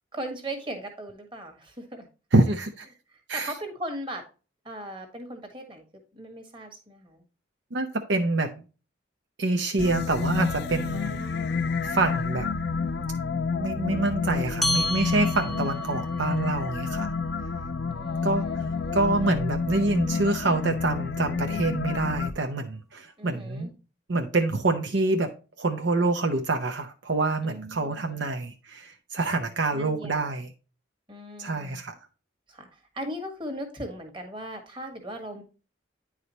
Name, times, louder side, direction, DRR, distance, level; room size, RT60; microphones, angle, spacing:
voice 1, 0.1-2.1 3.3-4.2 4.6-5.8 6.1-7.2 10.9-11.8 15.5-16.0 17.9-19.0 23.2-23.7 27.4-28.2 29.7-30.2 31.1-31.8 32.5-35.4, right 1 dB, 25° right, 1.6 m, -38 dB
voice 2, 2.3-2.9 3.3-3.5 7.7-8.5 9.4-11.2 11.8-12.5 13.5-17.1 18.2-18.5 18.9-23.7 24.1-30.5 31.4-31.9, right 2 dB, 65° right, 0.8 m, -26 dB
sound 1, 9.8-22.3, left 4 dB, 60° left, 0.5 m, -29 dB
sound 2, 14.6-19.4, left 1 dB, ahead, 0.6 m, -34 dB
9.6 x 4.9 x 2.9 m
head